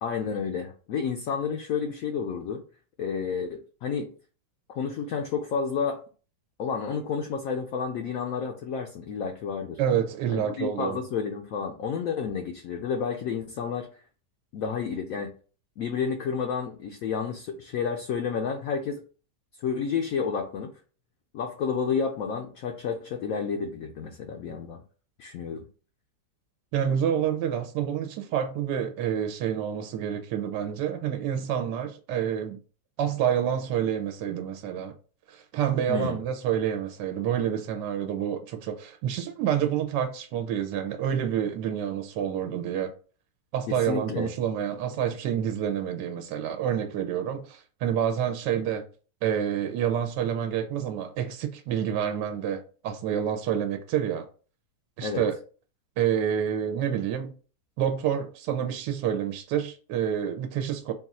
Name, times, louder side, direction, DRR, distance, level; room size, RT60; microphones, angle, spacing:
voice 1, 0.0-2.6 3.0-4.1 4.7-6.0 6.6-9.8 10.3-13.9 14.5-15.3 15.8-19.0 19.6-20.7 21.3-24.8 25.2-25.7 35.9-36.2 43.7-44.3 55.0-55.3, left 6 dB, 70° left, 0.8 m, -30 dB
voice 2, 9.8-11.0 26.7-32.6 33.0-34.9 35.3-42.9 43.5-48.8 49.2-54.3 55.0-55.3 56.0-57.3 57.8-60.9, right 9 dB, 85° right, 1.2 m, -28 dB
3.8 x 2.3 x 4.1 m
omnidirectional pair, 1.8 m